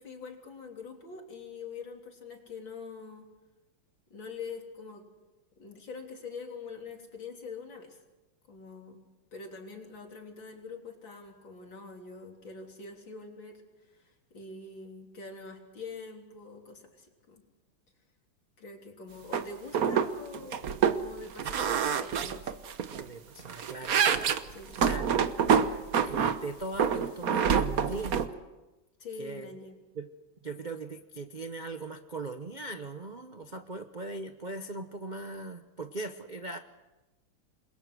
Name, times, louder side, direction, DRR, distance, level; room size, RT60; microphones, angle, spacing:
voice 1, 0.0-3.3 4.1-5.0 5.6-8.0 8.5-9.0 9.3-13.6 13.9-17.4 18.6-20.7 21.0-22.6 24.5-24.9 29.0-29.8, left 4 dB, 60° left, 2 dB, 4.1 m, -44 dB
sound 1, 19.3-19.4 19.7-20.1 20.3-21.0 21.4-23.0 23.4-26.4 26.8-28.3, right 7 dB, 50° right, 1.2 m, -26 dB
voice 2, 22.9-24.4 24.8-25.2 25.5-28.3 29.2-29.5 29.9-30.1 30.4-36.6, right 3 dB, 70° right, 8 dB, 0.4 m, -39 dB
28.5 x 22.0 x 6.2 m, 1.1 s
omnidirectional pair, 2.4 m